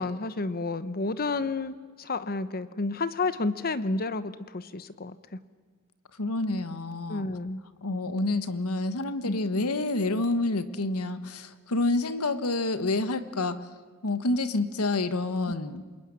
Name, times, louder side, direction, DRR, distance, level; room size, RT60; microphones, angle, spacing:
voice 1, 0.0-5.2 7.1-7.6 9.2-9.4, left 3 dB, 45° left, 14 dB, 0.9 m, -30 dB
voice 2, 6.2-7.3 7.8-13.6 14.0-15.9, left 2 dB, 85° left, 12 dB, 1.4 m, -28 dB
27.5 x 21.5 x 9.9 m, 1.5 s
head